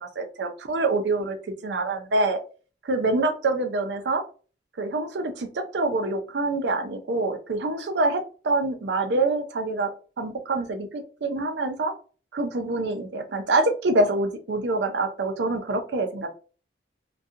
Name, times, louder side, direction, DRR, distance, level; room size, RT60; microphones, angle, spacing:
voice 1, 0.0-2.4 2.8-4.2 4.8-9.9 10.2-11.9 12.3-16.3, right 2 dB, 65° right, 5 dB, 0.5 m, -26 dB
2.4 x 2.2 x 2.7 m, 0.37 s
head